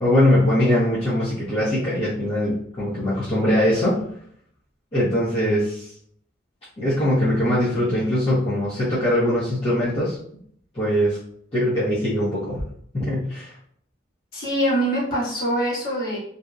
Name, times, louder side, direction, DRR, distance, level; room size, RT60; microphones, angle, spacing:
voice 1, 0.0-4.0 4.9-5.9 6.8-10.2 10.7-11.2 11.5-12.6 12.9-13.5, left 1 dB, 30° left, -11 dB, 0.6 m, -21 dB
voice 2, 14.3-16.2, right 1 dB, 50° left, -7 dB, 1.2 m, -23 dB
2.6 x 2.0 x 2.4 m, 0.64 s
head